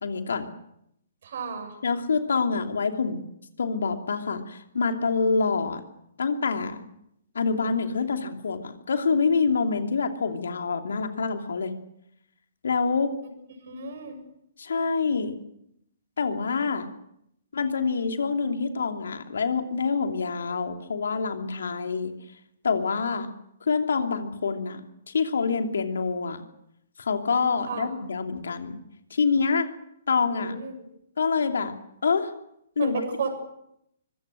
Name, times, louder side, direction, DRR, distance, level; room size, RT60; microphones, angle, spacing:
voice 1, 0.0-0.5 1.8-3.2 3.6-5.8 6.2-6.8 7.3-11.7 12.6-13.1 14.6-15.3 16.2-16.9 17.5-22.1 22.6-23.3 23.6-24.8 25.1-26.4 27.0-28.8 29.1-29.7 30.1-30.5 31.2-31.8 32.0-32.3 32.8-33.0, left 5 dB, 65° left, 5 dB, 2.8 m, -26 dB
voice 2, 1.2-1.8 13.7-14.2 27.7-27.9 30.3-30.7 32.8-33.4, right 5 dB, 55° right, 7 dB, 7.6 m, -32 dB
24.5 x 23.0 x 6.5 m, 0.77 s
figure-of-eight pair, 125°, 0 cm